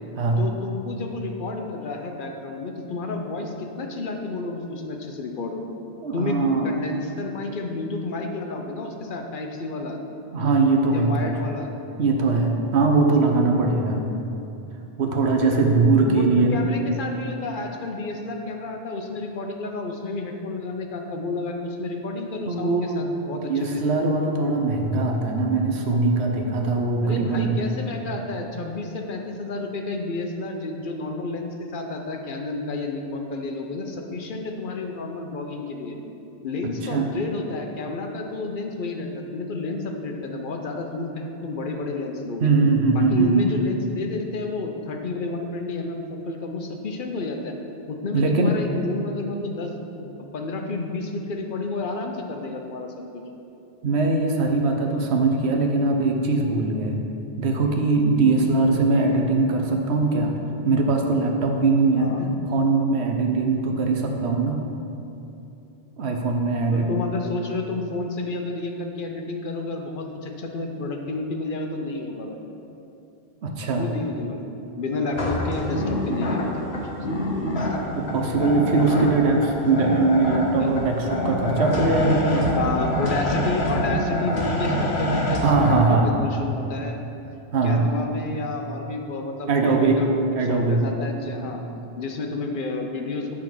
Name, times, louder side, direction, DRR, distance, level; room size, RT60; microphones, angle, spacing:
voice 1, 0.4-5.6 6.1-6.3 6.6-10.0 10.9-11.7 16.0-16.3 16.5-23.8 27.0-35.9 36.4-42.5 42.9-47.5 47.9-52.9 58.6-58.8 62.0-62.3 66.7-72.4 73.7-74.4 74.8-77.0 77.6-77.7 80.5-80.7 82.6-87.0 87.6-90.2 90.5-91.6 92.0-93.4, left 3 dB, 55° left, 3 dB, 0.8 m, -30 dB
voice 2, 6.0-6.7 10.3-11.3 12.0-14.1 15.0-16.6 22.5-27.5 36.8-37.1 42.4-43.5 48.1-48.5 53.8-57.0 57.4-60.3 60.6-62.1 62.5-64.6 66.0-66.9 73.4-73.9 77.9-82.5 85.4-86.1 87.5-87.8 89.5-90.0 90.3-90.8 91.2-91.5, right 3 dB, 85° right, 2 dB, 1.1 m, -21 dB
sound 1, 75.1-85.8, left 1 dB, 80° left, 1.3 m, -26 dB
8.6 x 3.7 x 6.0 m, 2.8 s
omnidirectional pair, 1.1 m